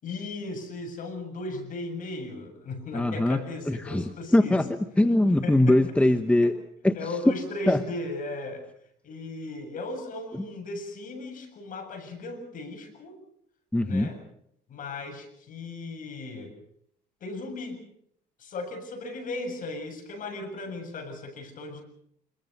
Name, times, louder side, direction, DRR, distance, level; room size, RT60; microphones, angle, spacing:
voice 1, 0.0-4.6 5.4-5.8 6.4-6.5 6.9-8.6 9.0-13.2 13.8-14.2 14.7-16.5 17.2-17.8 18.4-21.8, left 2 dB, 50° left, 7 dB, 7.5 m, -36 dB
voice 2, 2.9-3.4 3.7-6.5 6.8-7.0 7.7-7.8 10.3-10.4 13.7-14.1, left 1 dB, 5° left, 9 dB, 1.2 m, -22 dB
26.5 x 22.5 x 6.8 m, 0.71 s
cardioid pair, 110°, 17 cm